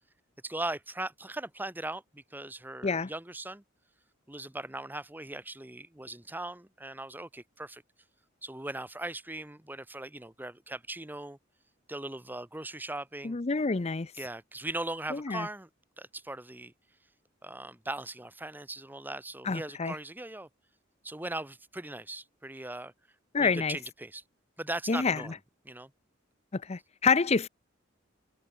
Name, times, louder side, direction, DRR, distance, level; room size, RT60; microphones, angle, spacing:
voice 1, 0.4-3.6 4.3-7.8 8.4-11.4 11.9-13.4 14.1-15.7 16.0-16.7 17.4-20.5 21.0-22.9 23.4-24.2 24.6-25.3 25.6-25.9, right 2 dB, 10° right, 1.0 m, -39 dB
voice 2, 13.2-14.1 15.1-15.5 19.5-20.0 23.3-23.8 24.9-25.2 26.5-27.5, left 4 dB, 35° left, 0.6 m, -27 dB
head